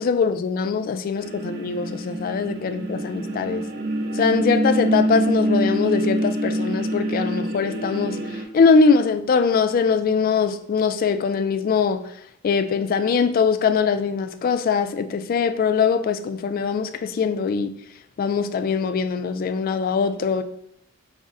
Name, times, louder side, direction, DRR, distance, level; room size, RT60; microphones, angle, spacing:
voice 1, 0.0-3.6 4.1-12.0 12.4-17.7 18.2-20.4, left 5 dB, 45° left, 0.3 m, -22 dB
sound 1, 1.2-8.4, right 1 dB, 55° right, 0.6 m, -25 dB
5.3 x 2.1 x 3.6 m
head